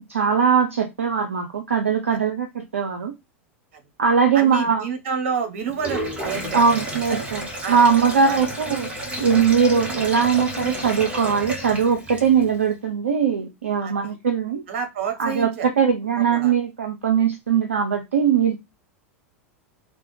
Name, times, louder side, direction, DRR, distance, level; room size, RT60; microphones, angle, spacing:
voice 1, 0.1-3.1 4.0-4.8 6.5-8.9 9.2-14.6 15.2-18.6, right 6 dB, 75° right, 0.4 m, -20 dB
voice 2, 4.3-6.6 7.1-7.2 7.6-7.8 8.2-8.4 13.8-14.2 14.7-15.7 16.1-16.5, right 6 dB, 55° right, 0.9 m, -29 dB
Sink (filling or washing), 5.7-12.5, right 1 dB, 15° right, 1.1 m, -31 dB
3.2 x 2.1 x 3.1 m
figure-of-eight pair, 85°, 7 cm